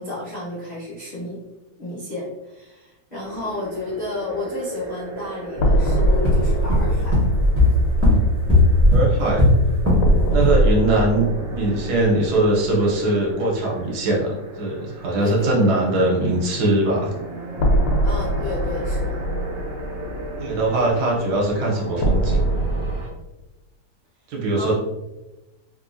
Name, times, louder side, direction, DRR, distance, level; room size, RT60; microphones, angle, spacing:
voice 1, 0.0-1.4 1.8-7.2 10.3-10.5 15.2-16.3 18.0-19.2 24.5-24.7, left 2 dB, 60° left, -9 dB, 0.4 m, -32 dB
sound 1, 3.2-23.1, right 2 dB, 60° right, 0.8 m, -36 dB
sound 2, 5.6-13.3 13.6-13.7 17.6-23.0, right 1 dB, 75° left, 1.0 m, -24 dB
sound 3, 6.0-10.1 10.4-10.7, left 1 dB, 20° right, 0.3 m, -17 dB
voice 2, 8.9-9.5 10.3-17.1 20.4-22.4 24.3-24.7, right 2 dB, 75° right, -2 dB, 1.7 m, -21 dB
3.6 x 2.8 x 2.5 m, 1.0 s
omnidirectional pair, 2.3 m